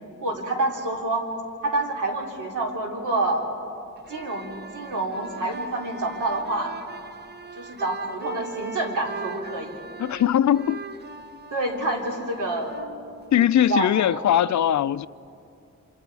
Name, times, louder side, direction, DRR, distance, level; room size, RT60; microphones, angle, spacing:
voice 1, 0.2-1.2 1.6-3.4 4.1-6.7 7.5-9.8 11.5-12.8 13.4-14.2, right 2 dB, 80° right, 3.4 m, -28 dB
sound 1, 4.0-13.8, right 4 dB, 35° right, 0.7 m, -40 dB
voice 2, 10.0-10.8 13.3-15.1, left 11 dB, 70° left, 0.4 m, -20 dB
27.5 x 26.5 x 4.8 m
wide cardioid pair, 160°, 30 cm